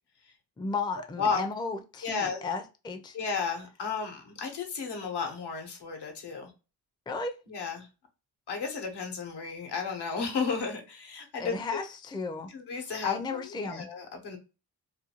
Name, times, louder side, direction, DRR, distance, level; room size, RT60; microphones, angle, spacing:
voice 1, 0.6-3.2 7.1-7.4 11.4-12.5 13.0-13.9, left 4 dB, 10° left, 0.4 m, -34 dB
voice 2, 2.0-2.4 3.1-6.5 7.5-7.9 8.5-11.8 12.5-14.4, left 5 dB, 80° left, 0.9 m, -33 dB
2.5 x 2.3 x 2.8 m
cardioid pair, 70°, 40 cm